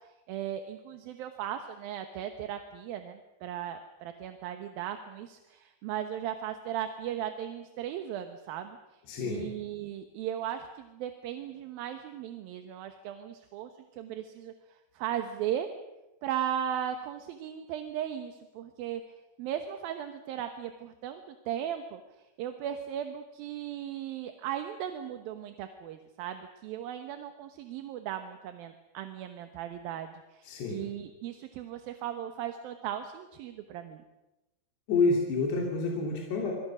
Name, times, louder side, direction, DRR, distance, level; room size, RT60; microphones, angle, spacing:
voice 1, 0.0-14.5 14.9-15.7 16.2-19.0 19.4-22.0 22.4-34.0, right 10 dB, 70° right, 7 dB, 2.7 m, -37 dB
voice 2, 9.1-9.4 30.5-30.8 34.9-36.5, left 3 dB, 75° left, -1 dB, 5.0 m, -28 dB
27.0 x 23.5 x 6.2 m, 0.99 s
omnidirectional pair, 4.9 m